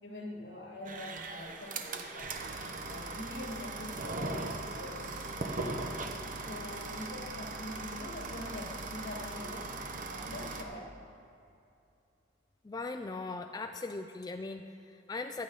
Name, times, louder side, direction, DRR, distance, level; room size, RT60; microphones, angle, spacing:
voice 1, 0.0-2.5 2.8-6.0 6.5-9.7 10.1-10.9, left 1 dB, 70° left, 0 dB, 2.0 m, -44 dB
sound 1, 0.8-10.6, right 3 dB, 50° right, 0.9 m, -39 dB
voice 2, 12.6-15.4, left 3 dB, 20° left, 6 dB, 0.4 m, -39 dB
15.0 x 11.0 x 4.1 m, 2.6 s
head